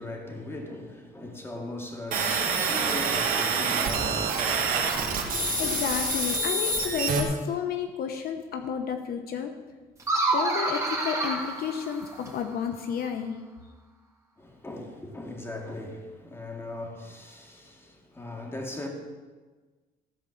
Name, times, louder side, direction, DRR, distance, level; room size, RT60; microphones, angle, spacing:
voice 1, 0.0-4.6 5.2-5.6 14.4-18.9, left 1 dB, 15° left, 2.3 m, -39 dB
sound 1, 2.1-7.2, right 3 dB, 55° right, 1.9 m, -26 dB
voice 2, 5.6-9.5 10.3-13.4, left 7 dB, 65° left, 0.9 m, -31 dB
sound 2, 10.0-12.5, right 2 dB, 15° right, 2.7 m, -28 dB
14.5 x 5.0 x 7.1 m
cardioid pair, 110°, 17 cm